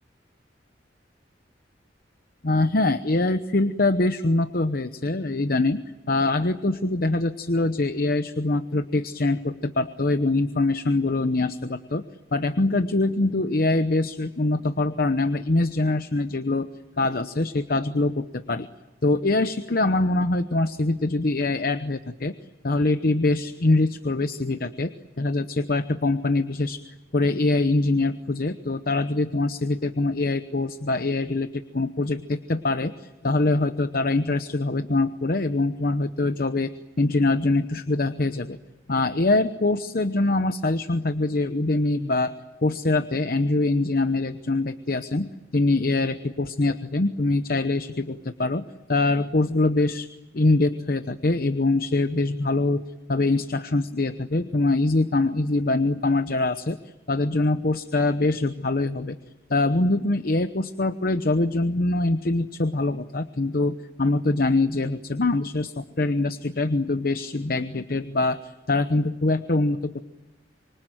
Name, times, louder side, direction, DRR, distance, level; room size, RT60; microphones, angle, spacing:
voice 1, 2.4-12.0 12.3-16.7 17.0-18.7 19.0-22.3 22.6-26.8 27.1-36.7 37.0-38.6 38.9-42.3 42.6-50.1 50.3-59.2 59.5-70.0, left 2 dB, 55° left, 10 dB, 0.9 m, -24 dB
26.0 x 24.5 x 9.1 m, 1.1 s
head